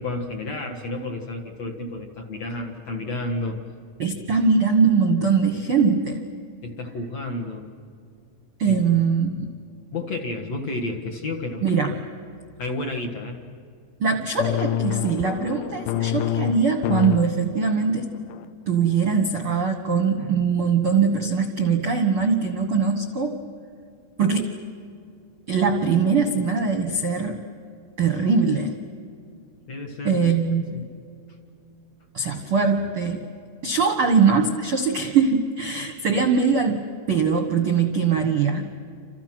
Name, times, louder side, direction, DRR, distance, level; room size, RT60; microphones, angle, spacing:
voice 1, 0.0-3.6 6.6-7.7 8.6-8.8 9.1-9.4 9.9-11.6 12.6-13.4 29.7-30.4 30.7-30.9, left 2 dB, 50° left, 2 dB, 2.3 m, -31 dB
voice 2, 4.0-6.2 8.6-9.5 11.6-11.9 14.0-18.1 18.7-23.4 24.2-24.5 25.5-27.4 28.0-28.8 30.0-30.8 32.1-33.3 33.6-38.6, right 5 dB, 60° right, 5 dB, 1.4 m, -21 dB
sound 1, 14.4-17.2 17.7-18.0 18.3-18.4, left 11 dB, 80° left, 2.6 m, -27 dB
30.0 x 27.5 x 6.1 m, 2.4 s
omnidirectional pair, 4.6 m